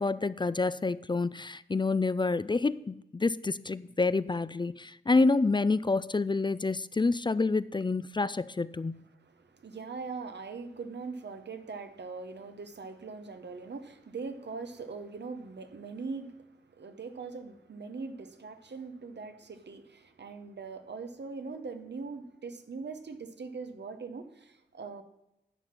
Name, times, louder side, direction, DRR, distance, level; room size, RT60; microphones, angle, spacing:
voice 1, 0.0-9.0, left 3 dB, 25° left, 0.3 m, -28 dB
voice 2, 9.2-25.0, right 4 dB, 75° right, 0.9 m, -41 dB
11.0 x 4.2 x 7.3 m
cardioid pair, 40°, 18 cm